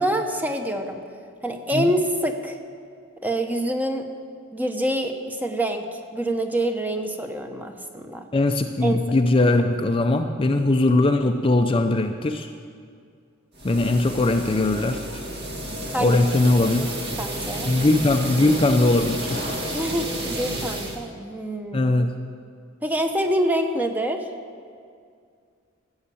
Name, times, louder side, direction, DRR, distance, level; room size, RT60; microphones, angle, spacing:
voice 1, 0.0-1.0 1.4-2.6 3.2-4.0 4.5-8.2 8.8-9.0 15.9-16.2 16.8-16.9 17.2-17.7 19.7-21.9 22.8-24.2, right 1 dB, 10° right, 5 dB, 0.9 m, -26 dB
voice 2, 8.3-12.5 13.6-15.2 16.0-16.9 17.7-19.4 21.7-22.1, left 2 dB, 25° left, 5 dB, 0.5 m, -20 dB
sound 1, 13.5-21.0, right 1 dB, 55° right, 1.9 m, -31 dB
15.5 x 7.2 x 8.4 m, 2.3 s
head